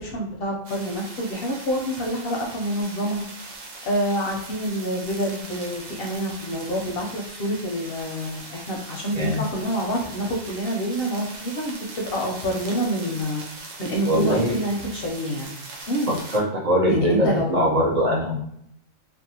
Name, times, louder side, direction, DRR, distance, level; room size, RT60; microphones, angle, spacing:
voice 1, 0.0-3.2 3.8-13.4 13.8-15.6 15.9-16.2 16.9-17.5, equal, 60° left, -1 dB, 0.6 m, -27 dB
sound 1, 0.6-16.4, right 3 dB, 75° right, 1.0 m, -40 dB
voice 2, 14.1-14.5 16.1-18.3, equal, 55° right, -3 dB, 0.4 m, -22 dB
2.6 x 2.1 x 2.7 m, 0.71 s
omnidirectional pair, 1.4 m